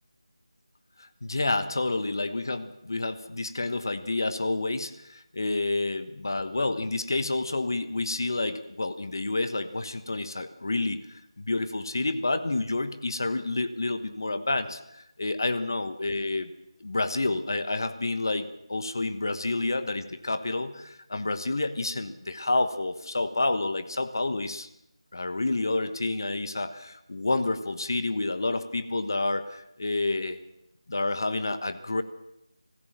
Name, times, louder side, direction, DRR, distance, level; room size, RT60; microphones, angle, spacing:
voice 1, 1.0-11.0 11.4-16.5 16.8-24.7 25.1-30.4 30.9-32.0, left 2 dB, 40° left, 11 dB, 1.2 m, -29 dB
25.0 x 15.5 x 7.4 m, 0.84 s
figure-of-eight pair, 175°, 3 cm